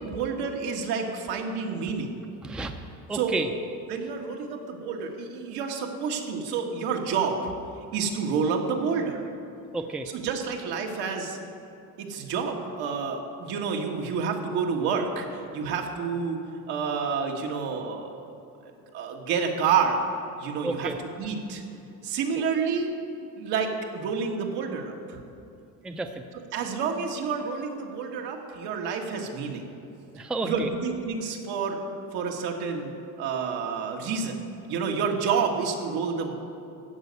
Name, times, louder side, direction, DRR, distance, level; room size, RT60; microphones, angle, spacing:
voice 1, 0.0-2.2 3.1-3.4 3.9-7.5 7.9-9.2 10.1-11.4 12.0-16.4 16.7-18.1 18.6-20.0 20.4-21.6 22.0-23.0 23.4-25.2 26.5-29.7 30.4-31.8 32.1-34.4 34.7-36.3, right 5 dB, 80° right, 2 dB, 1.8 m, -29 dB
voice 2, 2.4-2.7 3.1-3.5 9.7-10.1 20.6-21.0 25.8-26.2 30.1-30.7, right 3 dB, ahead, 6 dB, 0.4 m, -31 dB
15.0 x 5.3 x 9.5 m, 2.8 s
cardioid pair, 155°, 38 cm